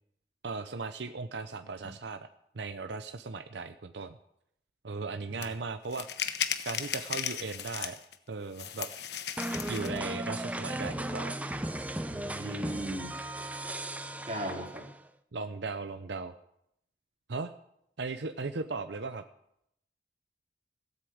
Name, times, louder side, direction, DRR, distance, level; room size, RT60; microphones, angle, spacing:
voice 1, 0.4-2.3 2.5-4.2 4.8-6.1 6.7-8.0 8.3-8.9 9.7-11.4 12.1-12.8 15.3-16.3 17.3-17.5 18.0-19.2, right 4 dB, 85° right, 8 dB, 0.7 m, -37 dB
sound 1, 5.4-5.5 5.9-8.1 8.6-10.0, left 9 dB, 70° left, 1.0 m, -35 dB
sound 2, 9.4-15.0, right 1 dB, 10° right, 0.5 m, -36 dB
voice 2, 12.4-13.1 14.3-14.9, equal, 35° right, 0 dB, 3.4 m, -36 dB
16.5 x 8.3 x 7.8 m, 0.76 s
head